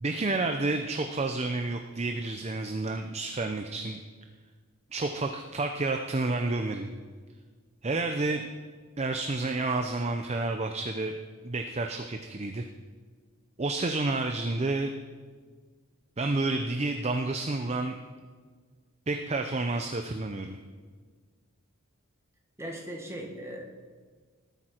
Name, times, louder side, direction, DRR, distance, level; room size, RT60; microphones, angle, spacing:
voice 1, 0.0-4.0 4.9-6.9 7.8-8.5 9.0-11.1 11.4-12.6 13.6-14.9 16.2-18.0 19.1-20.6, right 2 dB, 30° right, 5 dB, 0.6 m, -30 dB
voice 2, 22.6-23.6, right 1 dB, 15° right, 0 dB, 1.8 m, -38 dB
19.0 x 9.0 x 4.5 m, 1.5 s
head